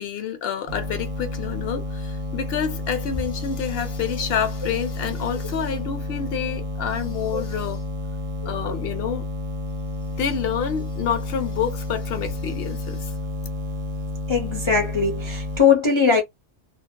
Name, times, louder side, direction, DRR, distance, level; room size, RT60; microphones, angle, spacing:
voice 1, 0.0-7.8 8.4-9.3 10.2-13.1, left 8 dB, 65° left, 0.8 m, -28 dB
sound 1, 0.7-15.6, left 2 dB, 70° right, 0.3 m, -30 dB
voice 2, 14.3-16.2, left 5 dB, 40° left, 0.4 m, -20 dB
2.5 x 2.1 x 2.6 m
omnidirectional pair, 1.2 m